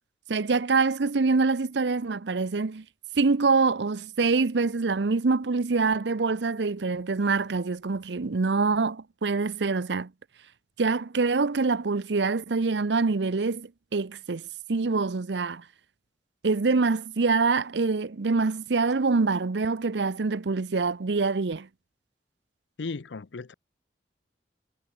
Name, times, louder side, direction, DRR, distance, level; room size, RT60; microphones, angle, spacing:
voice 1, 0.3-2.8 3.2-10.1 10.8-14.4 14.7-15.6 16.4-21.7, right 4 dB, 75° right, 0.7 m, -25 dB
voice 2, 22.8-23.5, left 4 dB, 85° left, 0.6 m, -35 dB
head